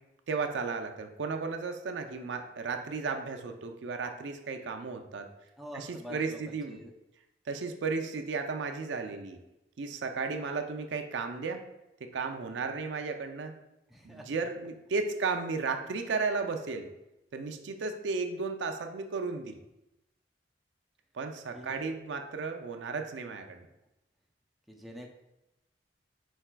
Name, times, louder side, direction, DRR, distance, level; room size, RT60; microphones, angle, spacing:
voice 1, 0.3-5.3 5.7-6.8 7.5-9.4 9.8-11.6 12.0-13.6 14.0-16.9 17.3-19.6 21.1-23.7, right 4 dB, 75° right, 5 dB, 0.4 m, -34 dB
voice 2, 5.6-6.9 13.9-14.3 21.5-21.9 24.7-25.1, equal, ahead, 0 dB, 0.4 m, -46 dB
4.7 x 4.4 x 2.2 m, 0.92 s
head